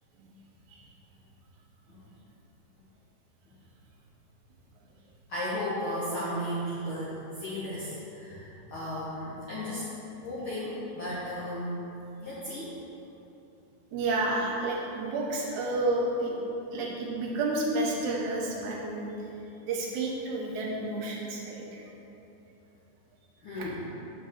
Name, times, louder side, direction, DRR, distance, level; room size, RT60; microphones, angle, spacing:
voice 1, 5.3-9.9 10.2-11.9 12.2-12.8 23.4-23.9, equal, 80° left, -9 dB, 1.1 m, -35 dB
voice 2, 13.9-16.3 16.7-19.1 19.6-21.9 23.6-23.7, right 2 dB, 70° right, -2 dB, 2.1 m, -30 dB
5.8 x 4.7 x 6.4 m, 2.9 s
omnidirectional pair, 3.9 m